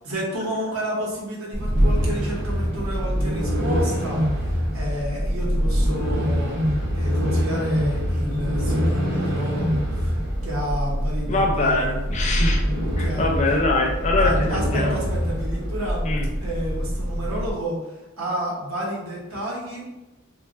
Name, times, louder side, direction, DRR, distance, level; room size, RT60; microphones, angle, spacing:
voice 1, 0.0-6.5 6.9-10.1 10.4-12.0 13.0-13.3 14.2-16.0 16.4-17.8 18.2-19.9, equal, 80° right, -3 dB, 0.9 m, -30 dB
sound 1, 1.5-17.5, equal, 55° right, 0.7 m, -24 dB
voice 2, 11.3-12.6 13.0-15.0 16.0-16.3, left 2 dB, 35° left, 1 dB, 0.4 m, -23 dB
2.9 x 2.3 x 2.4 m, 1.0 s
head